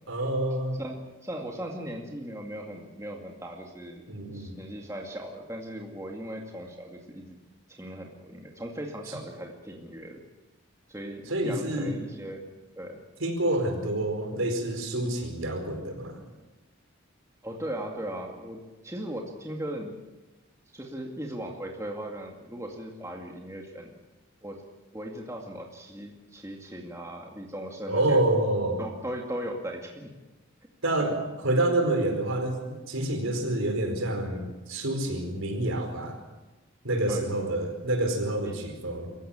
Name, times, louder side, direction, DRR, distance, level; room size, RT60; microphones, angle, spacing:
voice 1, 0.1-0.8 4.1-4.5 11.3-12.0 13.2-16.2 27.9-28.8 30.8-31.2 31.4-36.2 36.8-39.1, right 1 dB, 75° right, 4 dB, 4.7 m, -27 dB
voice 2, 0.8-4.1 4.3-7.4 7.7-10.2 10.9-13.0 17.4-20.0 20.7-23.9 24.4-24.6 24.9-28.2 28.8-30.2 31.0-31.1 37.1-37.5 38.4-38.6, right 1 dB, 15° right, 1 dB, 2.2 m, -38 dB
24.5 x 15.0 x 8.9 m, 1.1 s
head